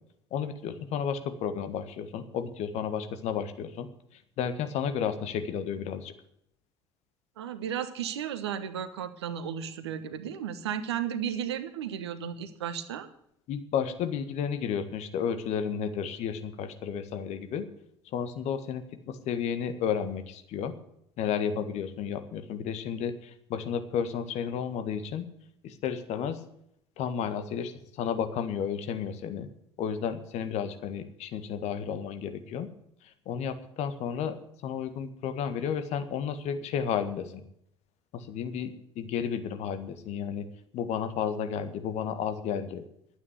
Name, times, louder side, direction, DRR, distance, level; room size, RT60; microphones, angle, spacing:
voice 1, 0.3-3.9 4.4-6.1 13.5-17.6 18.1-20.7 21.2-25.3 25.6-26.4 27.0-29.5 29.8-32.7 33.2-34.4 34.6-37.4 38.1-40.5 40.7-42.8, left 7 dB, 55° left, 9 dB, 1.7 m, -32 dB
voice 2, 7.4-13.1, right 9 dB, 75° right, 12 dB, 1.2 m, -34 dB
12.0 x 9.4 x 8.2 m, 0.74 s
figure-of-eight pair, 60°, 14 cm